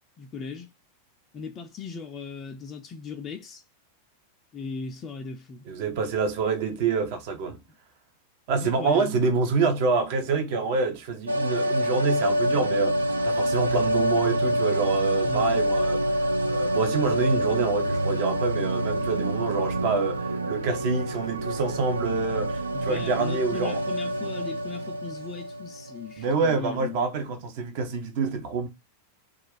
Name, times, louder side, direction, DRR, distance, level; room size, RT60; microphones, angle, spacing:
voice 1, 0.2-0.7 1.3-3.6 4.5-5.6 8.6-9.1 15.2-15.7 22.7-27.1, left 4 dB, 25° left, 0.4 m, -38 dB
voice 2, 5.7-7.6 8.5-16.0 16.4-23.8 26.2-28.7, right 4 dB, 50° right, 0.8 m, -26 dB
sound 1, 11.3-26.2 26.4-26.5, equal, 75° right, 0.4 m, -27 dB
2.4 x 2.3 x 3.7 m
figure-of-eight pair, 90°, 0 cm